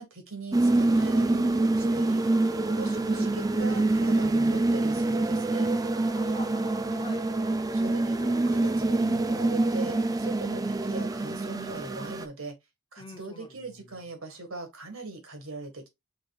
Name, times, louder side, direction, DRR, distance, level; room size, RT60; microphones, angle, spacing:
voice 1, 0.0-2.2 2.8-5.8 7.7-12.5 12.9-15.9, right 3 dB, 75° right, 1.7 m, -40 dB
sound 1, 0.5-12.3, right 2 dB, 15° right, 0.3 m, -26 dB
voice 2, 2.1-3.4 5.8-7.3 13.0-13.9, left 3 dB, 25° left, 0.7 m, -46 dB
6.5 x 3.0 x 2.4 m
head